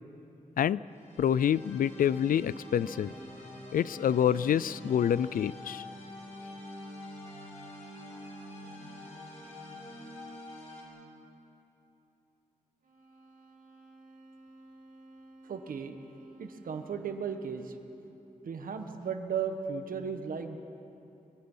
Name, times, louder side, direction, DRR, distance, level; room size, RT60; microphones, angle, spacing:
sound 1, 0.9-10.8, left 1 dB, 55° left, 7.3 m, -46 dB
voice 1, 1.2-3.1 3.7-5.8, left 9 dB, 90° left, 19 dB, 0.4 m, -27 dB
sound 2, 12.8-17.7, right 1 dB, 65° right, 2.8 m, -54 dB
voice 2, 15.4-15.9 16.4-17.7 18.4-20.6, right 6 dB, 90° right, 7 dB, 1.5 m, -35 dB
25.0 x 22.0 x 5.7 m, 2.9 s
wide cardioid pair, 120°, 14 cm